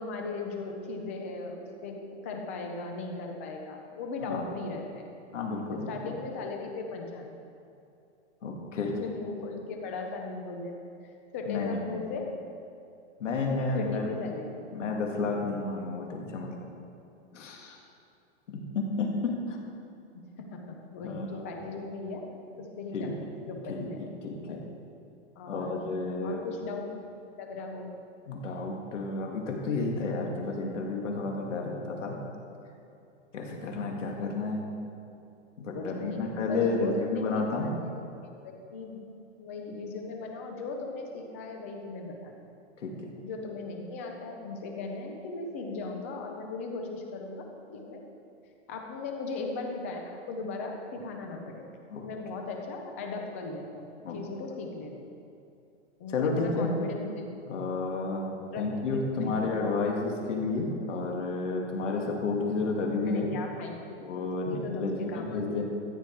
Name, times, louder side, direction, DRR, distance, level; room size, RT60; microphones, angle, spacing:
voice 1, 0.0-5.1 5.7-7.4 8.4-8.5 8.8-10.7 11.0-12.3 13.7-14.5 20.1-22.3 22.6-23.1 23.5-24.1 24.5-24.6 25.4-25.9 26.2-26.8 27.4-27.9 35.7-37.7 38.4-39.0 39.4-42.3 43.2-47.5 47.7-48.0 48.7-51.7 52.0-53.9 54.1-54.9 56.0-57.3 58.3-58.8 59.2-59.3 63.1-64.0 64.6-65.4, left 3 dB, 10° left, 2 dB, 0.5 m, -38 dB
voice 2, 5.3-6.2 8.4-8.9 11.5-12.0 13.2-14.0 14.7-16.5 17.3-17.8 18.5-19.6 21.0-21.5 22.9-23.1 23.7-24.6 25.5-26.4 28.3-32.2 33.3-34.7 35.6-37.7 42.8-43.1 51.9-52.0 54.0-54.2 56.1-56.7 57.5-58.2 58.6-63.3 64.0-65.6, left 3 dB, 75° left, 0 dB, 2.4 m, -31 dB
14.0 x 10.0 x 4.6 m, 2.7 s
hypercardioid pair, 175°, 36 cm